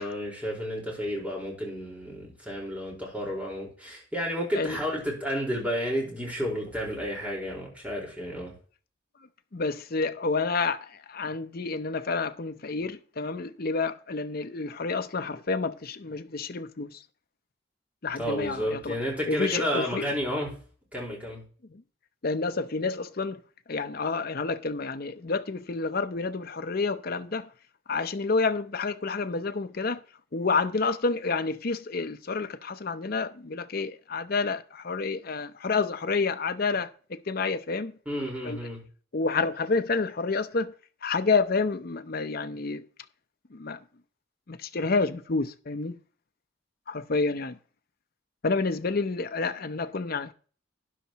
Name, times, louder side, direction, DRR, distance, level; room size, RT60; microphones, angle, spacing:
voice 1, 0.0-8.5 18.2-20.5 20.9-21.5 38.1-38.8, equal, 5° right, 4.5 m, -31 dB
voice 2, 9.5-17.0 18.0-19.0 19.3-20.1 21.7-21.8 22.2-23.4 23.7-27.5 27.9-30.0 30.3-37.9 38.4-38.6 39.1-40.7 41.0-42.8 43.5-43.8 44.5-46.0 46.9-47.6 48.4-50.3, left 4 dB, 50° left, 0.7 m, -29 dB
12.5 x 10.5 x 3.0 m
head